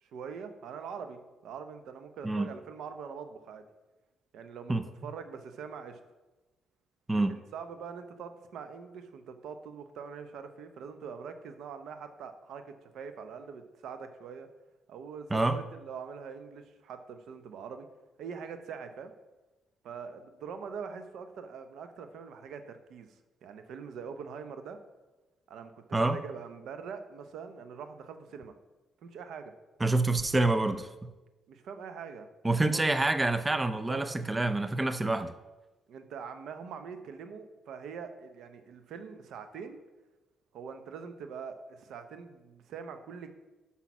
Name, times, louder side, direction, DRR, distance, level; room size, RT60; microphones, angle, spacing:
voice 1, 0.0-3.6 4.3-6.0 7.1-14.5 14.9-17.9 18.2-19.1 19.8-24.8 25.5-28.5 29.0-29.5 31.5-32.9 33.7-34.0 35.9-39.8 40.5-43.3, right 6 dB, 75° right, 8 dB, 0.7 m, -43 dB
voice 2, 29.8-31.1 32.4-35.3, right 2 dB, 20° right, 10 dB, 0.4 m, -27 dB
6.0 x 5.6 x 5.9 m, 1.1 s
cardioid pair, 90°, 0 cm